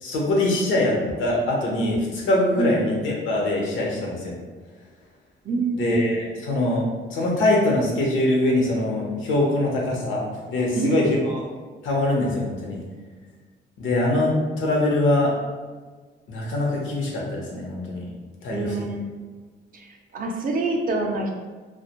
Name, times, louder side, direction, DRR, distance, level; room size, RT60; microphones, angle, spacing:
voice 1, 0.0-4.4 5.7-11.4 11.8-12.8 13.8-15.4 16.3-18.1 18.4-18.8, left 1 dB, 80° left, -2 dB, 0.7 m, -23 dB
voice 2, 5.4-6.1 10.7-11.0 18.5-19.1 19.7-21.4, right 2 dB, 45° right, 1 dB, 0.4 m, -26 dB
2.1 x 2.0 x 2.8 m, 1.4 s
cardioid pair, 90°, 20 cm